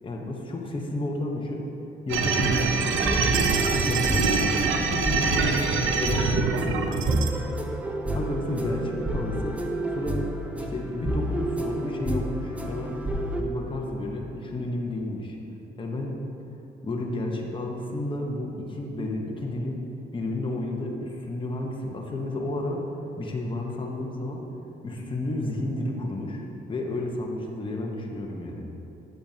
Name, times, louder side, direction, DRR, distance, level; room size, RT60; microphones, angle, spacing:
voice 1, 0.0-1.7 2.1-4.5 4.8-7.1 8.1-9.6 9.9-10.3 10.6-13.0 13.4-15.4 15.8-16.2 16.8-22.9 23.2-24.5 24.8-26.4 26.7-28.7, left 1 dB, 25° left, 0 dB, 0.9 m, -31 dB
sound 1, 2.1-7.3, right 5 dB, 80° right, 0.6 m, -25 dB
sound 2, 2.2-13.4, right 1 dB, 5° right, 0.6 m, -30 dB
8.9 x 6.8 x 2.8 m, 2.9 s
cardioid pair, 90°, 20 cm